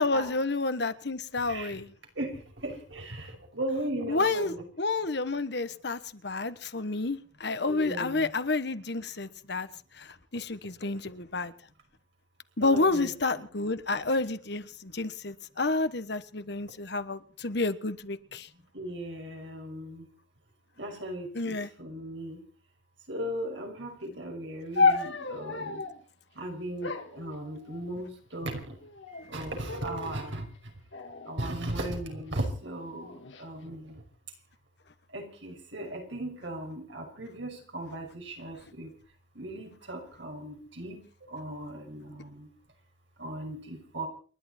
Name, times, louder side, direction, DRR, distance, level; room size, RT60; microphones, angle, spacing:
voice 1, 0.0-1.9 4.1-9.7 10.0-10.1 10.3-11.5 12.6-18.5 21.3-21.7, left 3 dB, 60° left, 1.3 m, -30 dB
voice 2, 2.6-3.3 3.5-4.6 7.7-8.3 12.6-13.1 13.4-13.5 18.7-20.0 20.8-22.4 23.1-25.8 26.4-28.1 28.3-28.7 29.3-30.4 31.3-33.1 33.4-33.9 35.1-38.9 39.4-41.0 41.3-42.5 43.2-44.1, right 1 dB, 75° right, 5.6 m, -37 dB
sound 1, 24.8-26.0 26.8-28.0 28.8-29.3 29.7-30.2 30.9-32.2 33.0-33.4, left 4 dB, 80° left, 2.1 m, -31 dB
29.0 x 11.5 x 4.4 m
head